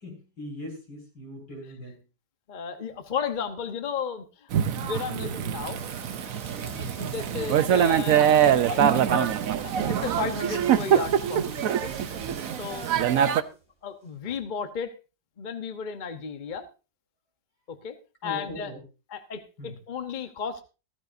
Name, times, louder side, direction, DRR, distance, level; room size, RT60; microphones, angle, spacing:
voice 1, 0.0-2.0 6.7-6.9 18.2-18.8 19.6-19.7, equal, 85° left, 1 dB, 6.5 m, -40 dB
voice 2, 2.5-5.8 6.6-8.3 8.6-9.4 9.6-12.0 12.6-13.4 13.8-14.9 15.4-16.7 17.7-18.0 18.2-18.7 19.1-20.6, left 6 dB, 35° left, 8 dB, 1.0 m, -34 dB
Thunder / Rain, 4.5-13.4, right 9 dB, 60° right, 1.1 m, -24 dB
sound 1, 5.7-13.6, right 1 dB, 45° right, 5.2 m, -46 dB
15.5 x 13.5 x 2.6 m, 0.31 s
omnidirectional pair, 1.8 m